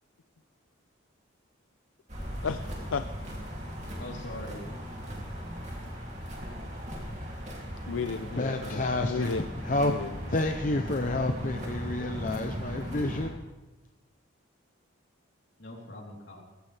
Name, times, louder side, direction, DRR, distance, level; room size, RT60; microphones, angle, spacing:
sound 1, 2.1-13.3, equal, 35° right, 2.8 m, -38 dB
voice 1, 2.4-3.1 7.9-8.6 9.0-9.5 9.8-10.4, left 5 dB, 75° left, 11 dB, 0.5 m, -33 dB
voice 2, 4.0-4.6 8.6-9.1 15.6-16.4, left 1 dB, 60° left, -2 dB, 3.6 m, -42 dB
voice 3, 8.4-9.3 9.7-9.9 10.3-13.3, left 2 dB, 40° left, 5 dB, 0.7 m, -29 dB
19.0 x 15.5 x 3.4 m, 1.2 s
head